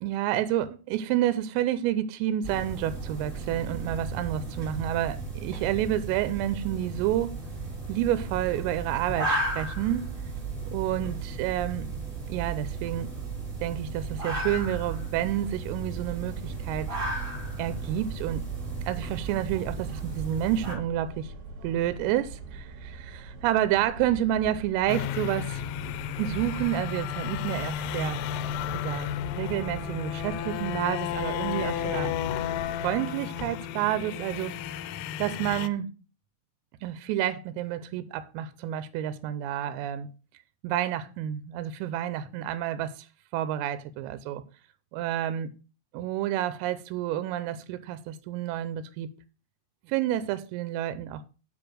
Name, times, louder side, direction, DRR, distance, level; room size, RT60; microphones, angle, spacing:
voice 1, 0.0-7.4 7.9-10.1 10.7-11.9 12.3-13.1 13.6-17.0 17.6-18.4 18.9-21.3 21.6-25.6 26.2-28.2 28.9-32.1 32.8-34.5 35.2-35.9 36.8-40.1 40.6-43.1 43.3-44.4 44.9-45.5 45.9-49.1 49.9-51.3, right 12 dB, 90° right, 3.3 m, -29 dB
sound 1, 2.4-20.7, right 3 dB, 15° right, 3.6 m, -34 dB
sound 2, 16.2-32.9, right 4 dB, 60° right, 3.9 m, -43 dB
sound 3, 24.9-35.7, left 10 dB, 90° left, 3.2 m, -33 dB
8.9 x 4.9 x 6.2 m
omnidirectional pair, 5.8 m